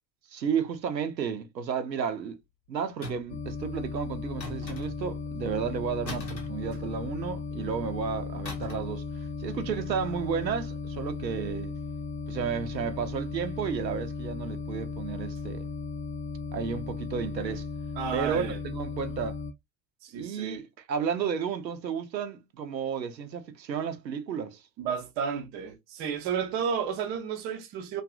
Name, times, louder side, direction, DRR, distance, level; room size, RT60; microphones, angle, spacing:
voice 1, 0.3-2.4 2.7-11.7 12.3-15.7 16.5-17.7 18.1-19.4 20.1-24.6, right 7 dB, 85° right, 0.6 m, -32 dB
sound 1, 3.0-3.5 4.4-5.2 6.1-7.2 8.5-9.0 9.2-9.5, left 1 dB, 90° left, 0.7 m, -41 dB
sound 2, 3.3-19.5, left 4 dB, 40° left, 0.5 m, -36 dB
voice 2, 18.0-18.6 20.0-20.6 24.8-28.0, right 7 dB, 25° right, 0.3 m, -32 dB
2.6 x 2.4 x 2.2 m
figure-of-eight pair, 70°, 50 cm